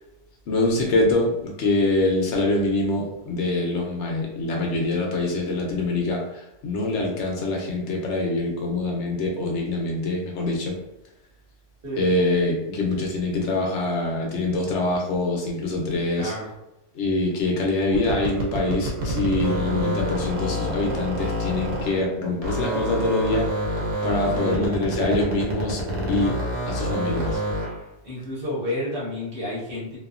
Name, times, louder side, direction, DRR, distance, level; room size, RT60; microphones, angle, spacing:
voice 1, 0.5-6.2 6.6-10.7 12.0-16.3 16.9-23.5 24.0-25.8 26.1-26.3 26.7-27.4, left 2 dB, 70° left, 0 dB, 1.0 m, -24 dB
voice 2, 16.1-16.5 24.3-24.8 28.0-30.0, left 1 dB, 50° right, -7 dB, 1.2 m, -30 dB
sound 1, 17.9-22.1 22.4-27.8, equal, 85° right, 1.1 m, -28 dB
2.7 x 2.3 x 2.4 m, 0.89 s
omnidirectional pair, 1.3 m